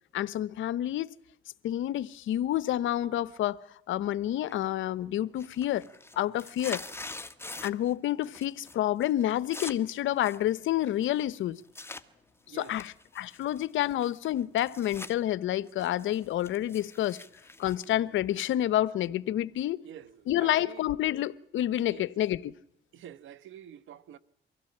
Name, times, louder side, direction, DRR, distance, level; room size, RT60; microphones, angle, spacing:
voice 1, 0.1-1.1 1.6-5.8 6.2-6.8 7.6-11.6 12.5-17.2 17.6-19.8 20.3-22.5, left 13 dB, 80° left, 0.9 m, -29 dB
sound 1, 4.5-4.9 5.2-7.9 8.2-8.7 9.0-12.0 12.6-15.1 15.5-18.7, left 2 dB, 10° left, 1.5 m, -44 dB
voice 2, 19.8-20.8 21.9-22.1 22.9-24.2, right 10 dB, 75° right, 1.2 m, -47 dB
24.0 x 16.0 x 8.5 m
cardioid pair, 90°, 20 cm